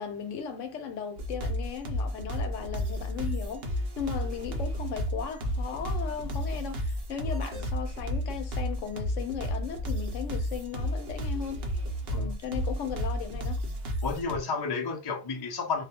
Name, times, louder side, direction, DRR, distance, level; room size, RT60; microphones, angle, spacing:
voice 1, 0.0-11.6 12.1-13.6, left 7 dB, 80° left, 0.9 m, -37 dB
sound 1, 1.2-14.4, equal, 55° right, 0.8 m, -32 dB
voice 2, 14.0-15.8, left 4 dB, 40° left, 0.3 m, -31 dB
2.3 x 2.1 x 2.8 m
omnidirectional pair, 1.3 m